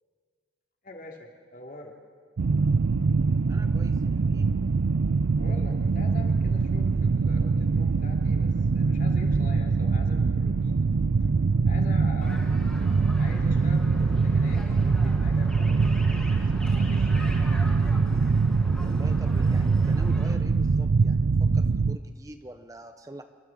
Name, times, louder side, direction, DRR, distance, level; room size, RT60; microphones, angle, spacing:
voice 1, 0.8-2.0 5.4-10.9 11.2-11.3 11.6-12.5 13.2-17.5, left 2 dB, 45° left, 1 dB, 2.8 m, -45 dB
sound 1, 2.4-22.0, right 4 dB, 80° right, 0.5 m, -23 dB
voice 2, 3.5-4.6 18.8-23.2, right 1 dB, 15° right, 7 dB, 0.8 m, -44 dB
sound 2, 12.2-20.3, equal, 5° left, 2.7 m, -43 dB
30.0 x 13.0 x 7.3 m, 2.1 s
head